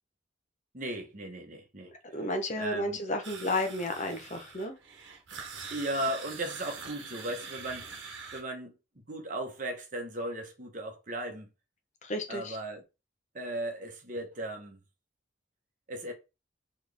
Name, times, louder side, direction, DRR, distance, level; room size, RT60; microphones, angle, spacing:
voice 1, 0.7-2.3 2.5-3.0 5.7-7.8 8.3-8.7 9.1-11.5 12.3-12.8 13.3-14.8 15.9-16.1, right 1 dB, 40° right, 1.1 m, -36 dB
voice 2, 2.1-4.7 12.0-12.6, left 1 dB, 40° left, 0.8 m, -32 dB
sound 1, 3.2-8.4, right 5 dB, 70° right, 1.1 m, -44 dB
4.3 x 3.2 x 3.4 m
head